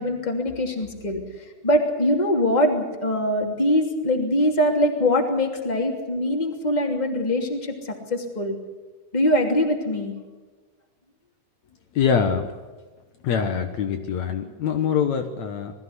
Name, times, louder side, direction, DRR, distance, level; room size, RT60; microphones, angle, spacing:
voice 1, 0.0-8.6 9.1-10.1, left 1 dB, 15° left, 2 dB, 2.7 m, -23 dB
voice 2, 12.0-12.5 13.2-15.7, left 7 dB, 65° left, 6 dB, 2.4 m, -24 dB
21.0 x 15.0 x 9.8 m, 1.3 s
omnidirectional pair, 3.6 m